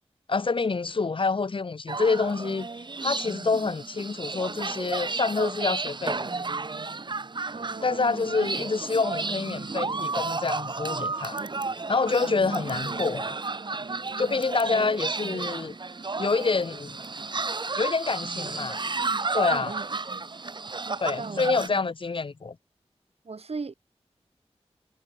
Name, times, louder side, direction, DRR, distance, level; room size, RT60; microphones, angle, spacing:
voice 1, 0.3-2.7 3.0-6.3 7.8-11.4 11.9-13.4 14.2-15.8 16.2-17.0 17.8-18.8 19.3-19.8 21.0-22.6, left 4 dB, 50° left, 0.9 m, -27 dB
sound 1, 1.9-21.7, right 3 dB, 45° right, 0.8 m, -32 dB
voice 2, 7.5-8.6 13.5-13.7 14.1-14.4 14.7-14.9 19.0-20.2 20.9-21.9 23.2-23.7, right 4 dB, 70° right, 2.5 m, -40 dB
wide cardioid pair, 80°, 11 cm